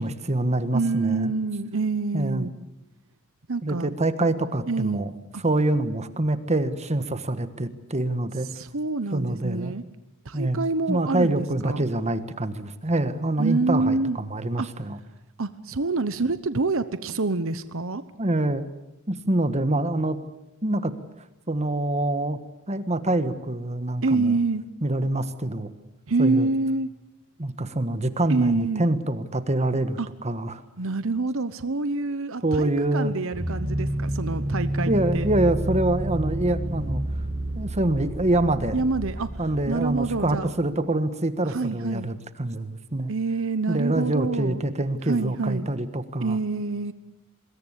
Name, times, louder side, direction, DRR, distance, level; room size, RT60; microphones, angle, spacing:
voice 1, 0.0-1.3 2.1-2.5 3.6-5.1 5.4-8.5 9.1-9.8 10.3-15.0 18.2-18.7 19.1-20.2 20.6-20.9 21.5-22.4 22.7-24.4 24.8-25.7 26.2-26.5 27.4-30.6 32.4-33.1 34.9-37.0 37.5-38.8 39.4-43.1 43.7-46.4, right 1 dB, 30° right, 11 dB, 1.5 m, -25 dB
voice 2, 0.7-2.5 3.5-3.9 4.7-5.1 5.3-5.4 8.5-9.8 10.2-11.8 13.4-14.2 14.6-14.7 15.4-18.0 24.0-24.6 26.1-26.9 28.3-28.9 30.0-30.1 30.8-35.3 38.7-39.3 39.7-40.5 41.4-42.1 43.1-44.6 45.1-45.7 46.2-46.9, right 3 dB, 65° right, 12 dB, 1.0 m, -26 dB
sound 1, 33.3-40.5, right 1 dB, 10° right, 7.2 m, -30 dB
25.0 x 22.0 x 8.3 m, 0.92 s
head